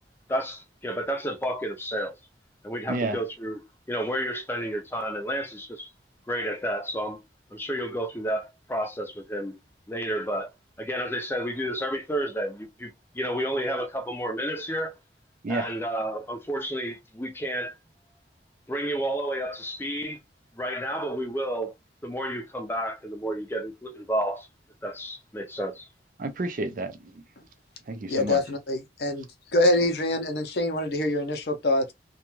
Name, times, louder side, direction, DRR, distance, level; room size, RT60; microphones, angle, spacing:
voice 1, 0.3-2.1 2.6-3.6 3.9-5.9 6.3-7.2 7.5-9.6 9.9-10.5 10.8-12.9 13.1-14.9 15.5-17.7 18.7-20.2 20.6-21.7 22.0-24.5 24.8-25.8, equal, 15° left, 0.6 m, -31 dB
voice 2, 2.9-3.2 15.4-15.7 26.2-27.2 27.9-28.4, right 2 dB, 45° right, 0.4 m, -30 dB
voice 3, 28.1-29.3 29.5-31.9, left 1 dB, 60° left, 0.6 m, -25 dB
2.5 x 2.3 x 2.9 m
head